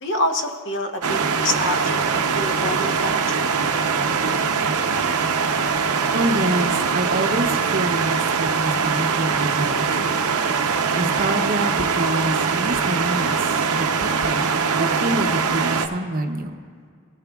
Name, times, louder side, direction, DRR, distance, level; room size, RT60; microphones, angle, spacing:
voice 1, 0.0-3.4, left 1 dB, 55° left, 5 dB, 1.0 m, -27 dB
sound 1, 1.0-15.9, right 5 dB, 85° right, 0.8 m, -22 dB
voice 2, 6.1-10.1 10.9-16.5, right 1 dB, 40° right, 5 dB, 0.7 m, -26 dB
21.0 x 12.5 x 2.3 m, 2.1 s
head